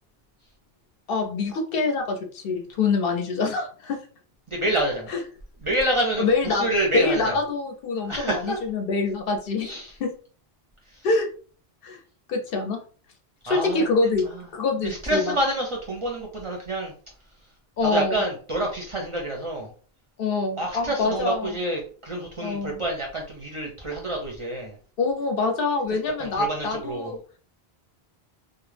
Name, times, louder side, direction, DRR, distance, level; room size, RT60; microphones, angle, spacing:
voice 1, 1.1-4.0 5.1-5.2 6.2-6.7 6.9-9.7 10.0-10.1 11.0-11.3 11.8-12.0 12.3-12.8 13.4-15.4 17.8-18.2 20.2-21.5 22.4-22.8 25.0-27.2, left 3 dB, 70° left, 3 dB, 0.7 m, -25 dB
voice 2, 4.5-5.1 5.6-7.4 8.1-8.6 9.6-9.9 10.9-11.0 13.5-13.9 14.3-14.4 14.8-16.9 17.8-19.7 20.6-24.8 26.2-27.1, right 1 dB, 40° right, -1 dB, 0.5 m, -27 dB
2.2 x 2.0 x 3.2 m, 0.41 s
omnidirectional pair, 1.1 m